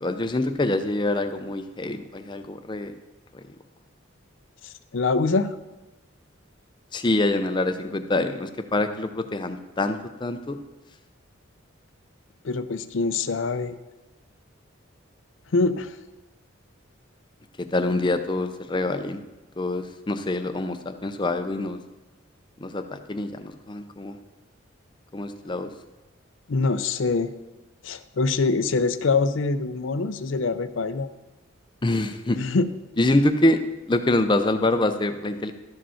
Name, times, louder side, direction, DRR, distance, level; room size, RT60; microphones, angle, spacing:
voice 1, 0.0-2.9 6.9-10.6 17.7-19.2 19.6-21.8 22.6-24.1 25.1-25.7 31.8-32.4 33.0-33.6 33.9-35.5, left 2 dB, 25° left, 9 dB, 0.5 m, -25 dB
voice 2, 4.6-5.5 12.4-13.8 15.5-16.0 26.5-27.3 27.8-31.1 32.3-32.7, left 3 dB, 65° left, 12 dB, 0.5 m, -24 dB
12.5 x 5.2 x 5.7 m, 1.1 s
head